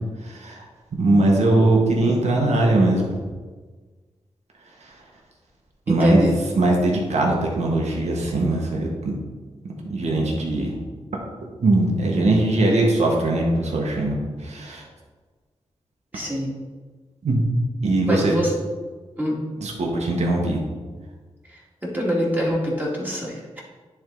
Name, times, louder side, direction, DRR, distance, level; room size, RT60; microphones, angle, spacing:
voice 1, 0.2-0.6 1.0-3.2 5.9-9.1 9.8-10.8 11.6-14.2 14.4-14.8 17.2-17.4 17.8-18.3 19.6-20.6, right 2 dB, 75° right, -1 dB, 1.4 m, -20 dB
voice 2, 5.9-6.3 16.1-16.5 18.1-18.5 19.2-19.4 21.5-23.6, equal, 15° right, -5 dB, 2.3 m, -25 dB
10.5 x 3.6 x 3.9 m, 1.4 s
cardioid pair, 70°, 12 cm